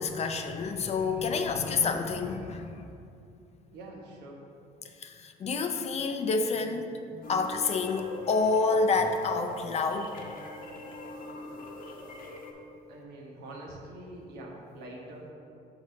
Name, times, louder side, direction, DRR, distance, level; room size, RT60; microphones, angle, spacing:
voice 1, 0.0-2.8 5.0-10.3, left 4 dB, 40° left, 6 dB, 0.5 m, -28 dB
voice 2, 3.7-4.4 12.9-15.3, right 1 dB, 80° right, -2 dB, 1.2 m, -44 dB
sound 1, 7.2-12.5, left 2 dB, 55° left, 0.8 m, -42 dB
5.0 x 4.0 x 5.3 m, 2.5 s
cardioid pair, 110°, 17 cm